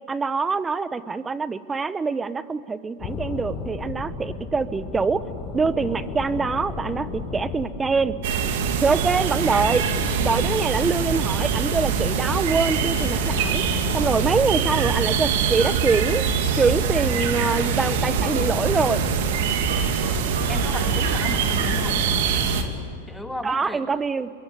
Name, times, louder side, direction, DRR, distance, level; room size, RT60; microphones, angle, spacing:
voice 1, 0.1-5.2 5.5-8.2 8.8-9.9 10.2-13.6 13.9-16.3 16.6-19.0 23.4-24.3, right 4 dB, 15° right, 14 dB, 1.1 m, -24 dB
sound 1, 3.0-22.8, left 4 dB, 40° left, 5.6 m, -34 dB
sound 2, 8.2-22.6, right 7 dB, 60° right, 2.6 m, -24 dB
sound 3, 17.8-19.3 19.7-21.9, right 4 dB, 80° right, 5.0 m, -34 dB
voice 2, 20.5-22.0 23.1-23.9, left 1 dB, 5° left, 4 dB, 2.9 m, -34 dB
27.0 x 22.5 x 8.5 m, 2.3 s
hypercardioid pair, 100°, 0 cm